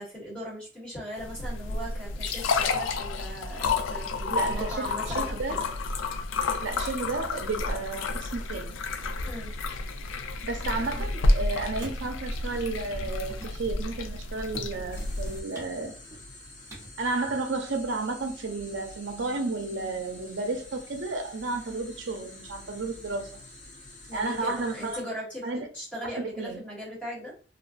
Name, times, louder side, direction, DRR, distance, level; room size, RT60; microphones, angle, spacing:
voice 1, 0.0-5.6 9.3-9.6 21.6-21.8 24.1-27.3, equal, 5° left, -8 dB, 1.2 m, -39 dB
sound 1, 1.2-15.4, left 3 dB, 80° left, 0.3 m, -30 dB
voice 2, 4.3-5.6 6.6-8.8 10.4-15.9 17.0-23.4 24.1-25.0 25.4-25.7 26.2-26.6, right 3 dB, 70° right, 4 dB, 0.6 m, -32 dB
sound 2, 10.5-17.4, right 1 dB, 15° right, 0.8 m, -48 dB
sound 3, 14.9-25.0, left 2 dB, 40° left, 0.7 m, -48 dB
2.5 x 2.2 x 2.5 m, 0.40 s
head